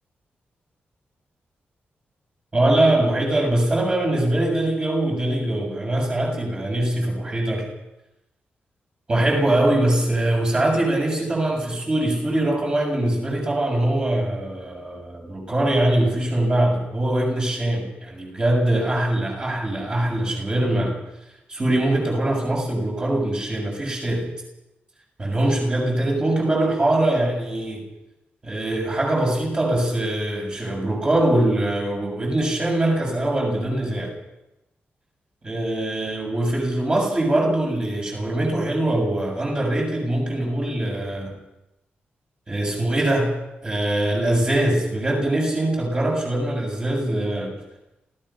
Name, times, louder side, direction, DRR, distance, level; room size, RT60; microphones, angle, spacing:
voice 1, 2.5-7.7 9.1-21.0 21.5-24.3 25.2-27.8 28.4-34.1 35.4-41.3 42.5-47.6, right 1 dB, 25° right, 0 dB, 7.3 m, -22 dB
28.0 x 16.5 x 5.9 m, 0.93 s
wide cardioid pair, 165°, 4 cm